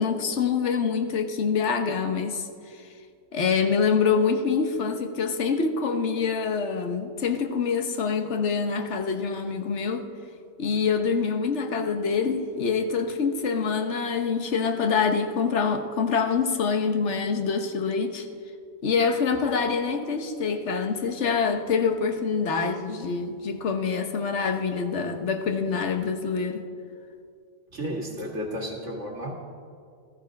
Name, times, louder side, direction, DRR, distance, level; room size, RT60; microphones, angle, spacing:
voice 1, 0.0-2.5 3.3-10.1 10.6-18.3 18.8-26.6, left 5 dB, 60° left, 7 dB, 1.3 m, -25 dB
voice 2, 27.7-29.3, equal, 60° right, 0 dB, 2.2 m, -32 dB
15.5 x 13.5 x 5.2 m, 2.4 s
omnidirectional pair, 1.4 m